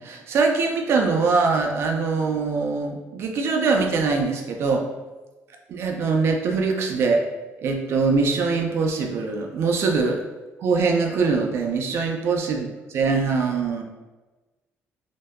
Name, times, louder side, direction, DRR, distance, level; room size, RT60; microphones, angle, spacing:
voice 1, 0.0-4.8 5.7-7.2 7.6-10.2 10.6-12.7 12.9-13.8, right 4 dB, 55° right, 3 dB, 0.4 m, -22 dB
2.6 x 2.1 x 2.2 m, 1.2 s
cardioid pair, 135°, 5 cm